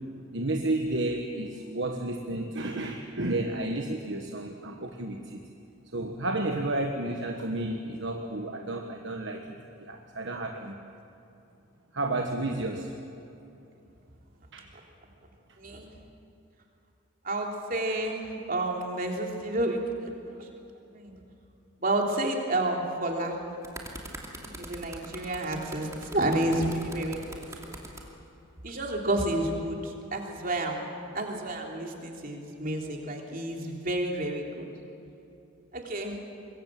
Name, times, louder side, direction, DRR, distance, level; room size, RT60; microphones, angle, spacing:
voice 1, 0.3-5.4 5.9-10.8 11.9-12.9 14.5-14.7, right 2 dB, 55° right, 3 dB, 1.4 m, -32 dB
voice 2, 15.6-15.9 17.2-20.5 20.9-21.2 21.8-23.4 24.5-27.8 28.6-30.8 31.1-34.7 35.7-36.2, right 1 dB, 40° right, 1 dB, 3.3 m, -30 dB
sound 1, 23.3-28.0 28.9-29.1, right 1 dB, 15° right, 2.6 m, -42 dB
26.0 x 22.5 x 7.6 m, 2.8 s
head